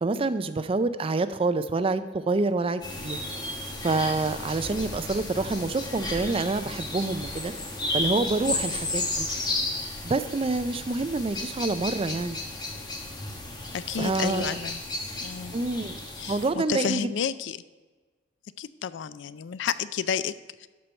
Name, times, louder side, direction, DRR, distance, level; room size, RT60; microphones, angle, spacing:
voice 1, 0.0-3.2 3.8-7.5 7.9-9.3 10.0-12.4 14.0-14.6 15.5-16.0 16.3-17.1, right 3 dB, 30° right, 12 dB, 0.4 m, -27 dB
sound 1, 2.8-16.5, left 2 dB, 25° left, 1.2 m, -33 dB
sound 2, 4.5-9.6, right 1 dB, 70° right, 1.7 m, -47 dB
voice 2, 13.7-14.8 15.2-15.6 16.2-17.6 18.6-20.7, left 7 dB, 75° left, 16 dB, 0.4 m, -31 dB
12.5 x 4.5 x 5.3 m, 1.3 s
head